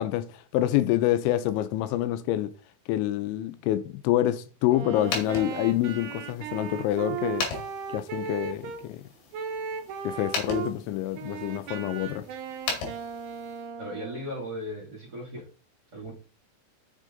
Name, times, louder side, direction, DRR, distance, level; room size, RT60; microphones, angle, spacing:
voice 1, 0.0-2.5 2.9-7.5 7.9-9.0 10.0-12.2, left 13 dB, 90° left, 3.0 m, -27 dB
Wind instrument woodwind instrument, 4.6-8.8 9.3-10.7 11.1-14.4, right 7 dB, 90° right, 3.7 m, -36 dB
sound 1, 4.9-13.7, left 5 dB, 65° left, 4.2 m, -38 dB
voice 2, 13.8-15.5 15.9-16.1, equal, 30° right, 2.2 m, -37 dB
7.4 x 6.4 x 3.9 m
omnidirectional pair, 5.3 m